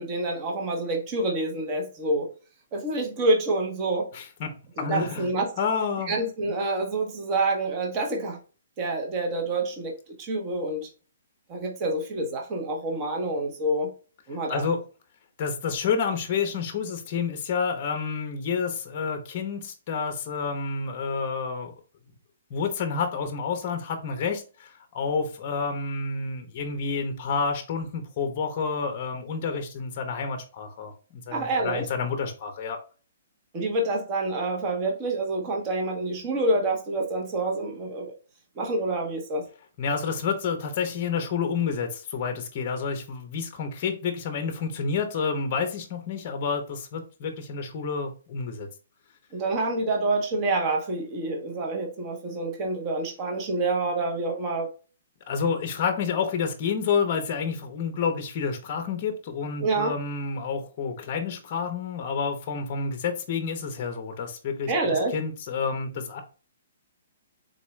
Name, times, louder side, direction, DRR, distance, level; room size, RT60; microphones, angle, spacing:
voice 1, 0.0-2.3 2.7-4.1 4.8-5.6 6.1-8.4 8.8-10.9 11.5-13.9 14.3-14.6 31.3-31.8 33.5-38.1 38.6-39.4 49.3-54.7 59.6-59.9 64.7-65.1, right 2 dB, 25° right, 1 dB, 0.7 m, -27 dB
voice 2, 4.1-4.5 4.8-5.3 5.6-6.1 14.5-14.8 15.4-21.7 22.5-32.8 39.8-48.7 55.3-66.2, left 5 dB, 35° left, 6 dB, 0.6 m, -29 dB
3.8 x 2.2 x 3.0 m, 0.35 s
hypercardioid pair, 165°, 0 cm